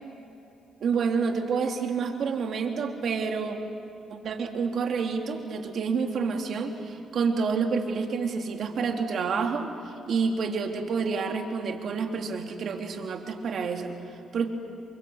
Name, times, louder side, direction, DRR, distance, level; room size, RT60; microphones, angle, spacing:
voice 1, 0.8-3.6 4.1-14.5, right 5 dB, 60° right, 3 dB, 3.1 m, -28 dB
28.5 x 23.5 x 8.1 m, 2.8 s
cardioid pair, 90°, 0 cm